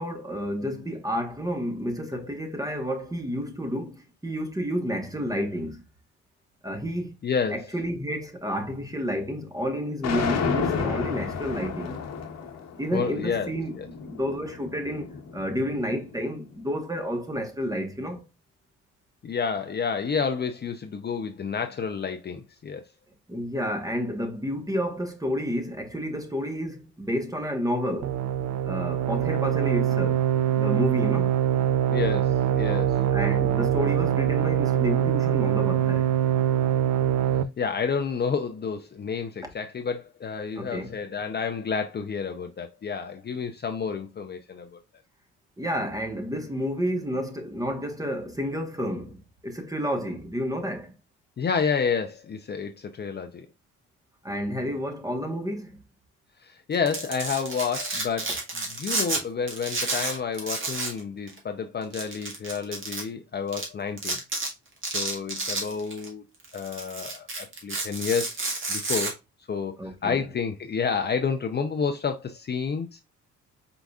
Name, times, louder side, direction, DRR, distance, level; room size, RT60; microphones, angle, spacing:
voice 1, 0.0-5.8 6.6-7.2 7.5-12.0 12.8-13.7 14.1-15.1 15.3-18.2 23.3-28.2 28.6-30.2 30.5-31.4 33.1-36.1 40.6-41.0 45.6-50.9 54.2-55.8 69.8-70.3, equal, 10° right, 1.2 m, -30 dB
voice 2, 7.2-7.7 12.9-13.9 19.2-22.8 31.9-33.0 37.6-44.8 51.4-53.5 56.4-64.2 64.9-66.2 66.5-69.1 69.5-69.7 70.0-73.0, left 6 dB, 35° left, 0.6 m, -30 dB
sound 1, 10.0-16.2, left 5 dB, 60° left, 1.2 m, -32 dB
sound 2, 28.0-37.4, right 10 dB, 60° right, 0.6 m, -23 dB
Domestic sounds home sounds, 56.7-59.2 59.5-61.0 61.3-61.4 61.9-63.0 63.5-63.6 64.0-64.5 64.8-66.1 66.4-69.1, right 3 dB, 40° right, 1.8 m, -30 dB
4.8 x 4.0 x 2.3 m
cardioid pair, 90°, 30 cm